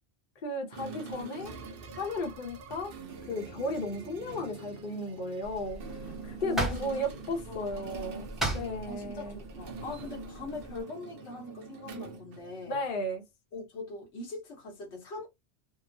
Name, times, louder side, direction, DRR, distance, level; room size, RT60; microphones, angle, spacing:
voice 1, 0.4-1.5 1.9-2.9 3.2-5.8 6.2-8.3 8.5-9.4 12.7-13.2, left 1 dB, 50° left, 0.9 m, -34 dB
sound 1, 0.7-13.0, right 4 dB, 60° right, 0.7 m, -45 dB
sound 2, 5.4-10.8, right 1 dB, ahead, 0.7 m, -38 dB
voice 2, 6.4-7.0 7.5-8.2 8.9-9.3 9.6-12.8 13.5-15.3, left 2 dB, 75° left, 1.2 m, -42 dB
2.9 x 2.0 x 2.5 m
omnidirectional pair, 1.2 m